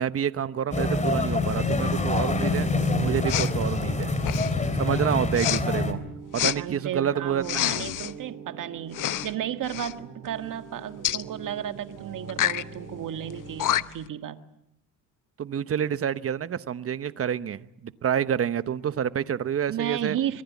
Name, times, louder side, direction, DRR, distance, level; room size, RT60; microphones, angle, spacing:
voice 1, 0.0-2.7 3.0-4.2 4.8-6.0 6.3-7.7 15.4-20.2, right 8 dB, 35° right, 14 dB, 1.0 m, -28 dB
sound 1, 0.7-5.9, left 2 dB, 20° left, 3.3 m, -26 dB
sound 2, 2.0-13.7, right 5 dB, 75° right, 4.7 m, -44 dB
Respiratory sounds, 3.3-3.5 4.2-4.6 5.3-5.6 6.3-6.6 7.4-8.1 8.9-9.3 9.6-9.9 11.0-11.2 12.3-12.6 13.3-13.4 13.6-14.1, left 12 dB, 50° left, 0.9 m, -27 dB
voice 2, 6.5-14.4 19.7-20.4, right 10 dB, 50° right, 8 dB, 1.8 m, -33 dB
25.5 x 22.5 x 8.5 m, 0.81 s
cardioid pair, 115°, 40 cm